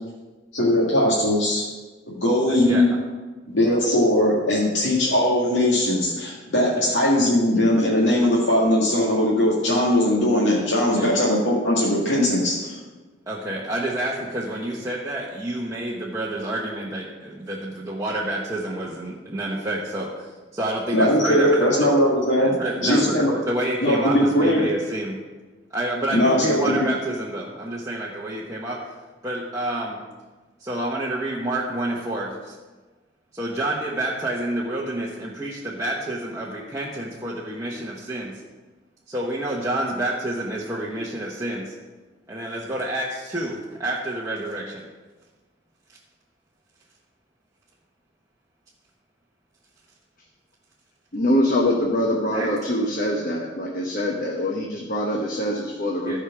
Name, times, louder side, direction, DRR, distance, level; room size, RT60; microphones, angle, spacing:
voice 1, 0.5-1.6 2.1-2.9 3.5-12.8 20.9-22.5 22.8-23.3 23.8-24.6 26.1-26.9, left 1 dB, 80° left, -6 dB, 2.0 m, -20 dB
voice 2, 2.5-2.9 6.9-7.0 10.9-11.1 13.3-21.9 22.4-25.2 25.7-28.8 29.2-30.0 30.6-32.5 33.3-38.4 39.1-41.7 42.3-44.8 52.3-52.5 56.0-56.2, right 1 dB, 15° right, -5 dB, 1.1 m, -28 dB
voice 3, 51.1-56.2, left 1 dB, 45° left, 0 dB, 1.1 m, -24 dB
14.5 x 5.0 x 6.0 m, 1.3 s
head